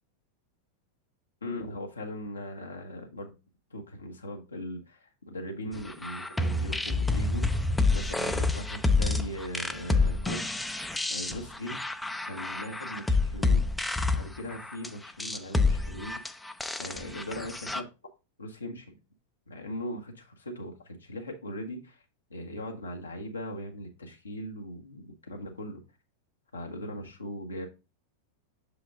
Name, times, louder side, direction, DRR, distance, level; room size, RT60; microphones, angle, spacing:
voice 1, 1.4-3.3 3.7-10.6 11.1-11.8 12.2-13.6 14.1-16.2 16.8-17.9 18.4-19.0 19.5-22.0 22.3-25.8 26.5-27.7, equal, 75° left, 1.1 m, -39 dB
sound 1, 5.9-17.8, left 3 dB, 5° left, 0.5 m, -28 dB
6.2 x 5.1 x 3.7 m
figure-of-eight pair, 90°, 0 cm